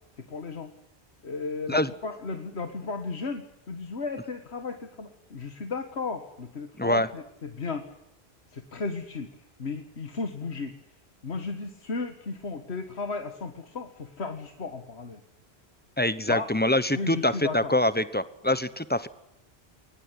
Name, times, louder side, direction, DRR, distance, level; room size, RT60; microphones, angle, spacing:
voice 1, 0.2-0.7 1.2-7.9 8.5-9.3 9.6-10.7 11.2-15.2 16.3-16.5 16.9-17.7, left 4 dB, 85° left, 7 dB, 1.9 m, -35 dB
voice 2, 6.8-7.1 16.0-19.1, left 1 dB, 10° left, 14 dB, 1.0 m, -25 dB
22.5 x 20.0 x 10.0 m, 0.84 s
omnidirectional pair, 1.1 m